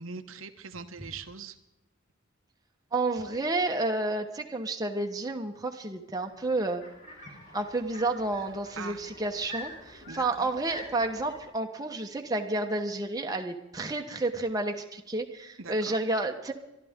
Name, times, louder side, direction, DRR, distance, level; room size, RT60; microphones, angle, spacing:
voice 1, 0.0-1.6 8.8-9.0 10.1-10.5 15.6-16.0, right 4 dB, 75° right, 8 dB, 1.0 m, -41 dB
voice 2, 2.9-6.8 7.5-16.5, right 2 dB, 20° right, 3 dB, 1.1 m, -30 dB
sound 1, 6.2-11.4, left 1 dB, 35° left, 4.1 m, -46 dB
24.0 x 12.5 x 3.7 m, 0.92 s
head